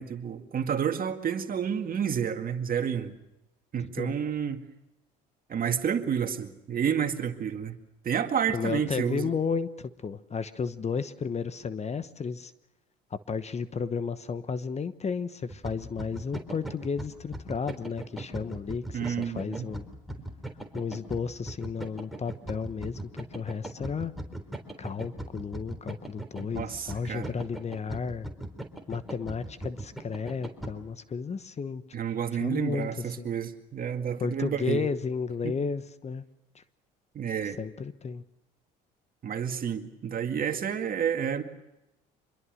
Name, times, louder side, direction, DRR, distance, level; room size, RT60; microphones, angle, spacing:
voice 1, 0.0-3.2 3.7-4.6 5.5-7.8 8.0-9.3 18.9-19.7 26.6-27.3 31.9-34.9 35.4-35.5 37.1-37.6 39.2-41.4, right 8 dB, 45° right, 6 dB, 2.2 m, -30 dB
voice 2, 8.5-12.5 13.1-19.9 20.7-24.1 24.8-28.3 28.9-31.8 32.3-33.3 34.2-36.2 36.5-36.6 37.6-38.2, left 5 dB, 30° left, 14 dB, 1.1 m, -33 dB
sound 1, 15.5-30.7, right 1 dB, ahead, 3.8 m, -39 dB
25.5 x 22.0 x 6.5 m, 0.92 s
hypercardioid pair, 70°, 21 cm